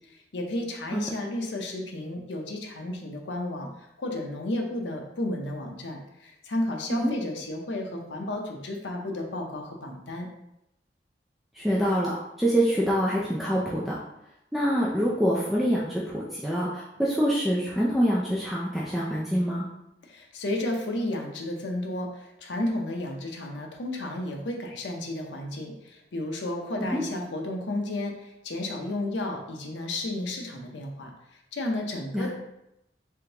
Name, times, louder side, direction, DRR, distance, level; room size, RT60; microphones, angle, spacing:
voice 1, 0.1-10.3 20.0-32.3, left 1 dB, 90° left, 2 dB, 0.7 m, -32 dB
voice 2, 11.5-14.0 14.5-19.7 26.8-27.0 32.1-32.3, equal, ahead, -6 dB, 0.4 m, -25 dB
3.6 x 3.4 x 2.8 m, 0.85 s
head